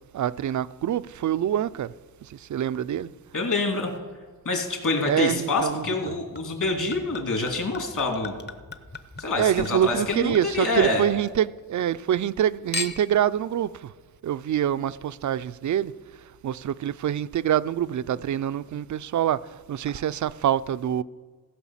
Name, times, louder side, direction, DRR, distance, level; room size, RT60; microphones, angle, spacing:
voice 1, 0.1-1.9 2.2-3.1 5.0-6.1 9.4-13.9 14.2-15.9 16.4-21.0, right 10 dB, 50° right, 0.4 m, -26 dB
voice 2, 3.3-3.9 4.4-8.3 9.2-11.0, left 2 dB, 50° left, 2.8 m, -26 dB
Chink clink / Liquid, 5.8-11.4 11.7-12.4 12.7-13.3 14.0-14.1, left 3 dB, 25° left, 0.9 m, -39 dB
15.5 x 5.5 x 7.3 m
cardioid pair, 95°, 39 cm